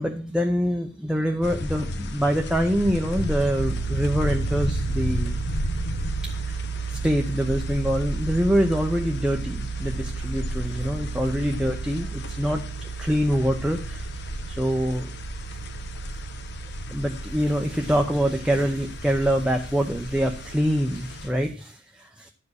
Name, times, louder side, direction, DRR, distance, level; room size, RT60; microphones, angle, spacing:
voice 1, 0.0-5.4 6.2-14.2 14.5-15.1 16.9-22.3, equal, 5° right, 2 dB, 0.7 m, -25 dB
sound 1, 1.4-21.3, left 1 dB, 60° left, 1.0 m, -33 dB
sound 2, 3.6-21.6, right 7 dB, 85° right, 0.4 m, -35 dB
11.0 x 5.0 x 6.4 m, 0.41 s
head